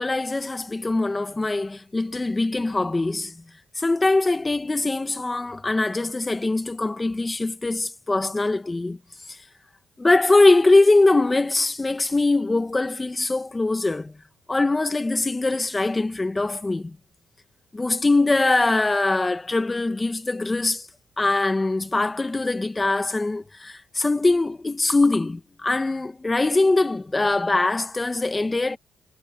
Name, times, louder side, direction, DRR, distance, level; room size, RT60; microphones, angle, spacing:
voice 1, 0.0-3.4 3.8-9.0 9.3-9.4 10.0-14.1 14.5-17.0 17.7-20.9 21.2-28.8, left 2 dB, 20° left, 1.8 m, -22 dB
cardioid pair, 90°, 0 cm